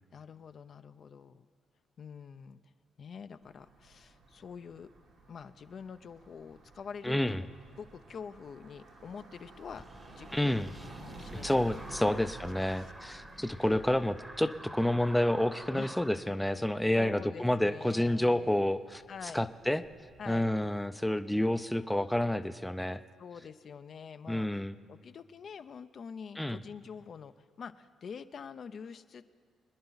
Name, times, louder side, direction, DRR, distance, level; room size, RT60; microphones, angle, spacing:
voice 1, 0.1-1.5 2.0-2.6 3.0-4.9 5.3-7.5 7.8-9.8 10.2-10.6 10.9-12.2 12.6-12.9 13.6-13.8 15.7-15.9 16.9-18.5 19.1-19.4 20.2-20.5 23.2-29.2, left 6 dB, 55° left, 10 dB, 0.5 m, -46 dB
sound 1, 3.4-20.7, right 2 dB, 75° right, 2.8 m, -53 dB
voice 2, 7.0-7.4 10.3-10.7 11.4-19.0 19.3-19.8 20.3-23.0 24.3-24.8 26.4-26.6, left 1 dB, 5° left, 10 dB, 0.5 m, -29 dB
sound 2, 9.7-16.2, right 1 dB, 10° right, 1.0 m, -49 dB
25.0 x 10.0 x 4.0 m, 2.2 s
cardioid pair, 90°, 0 cm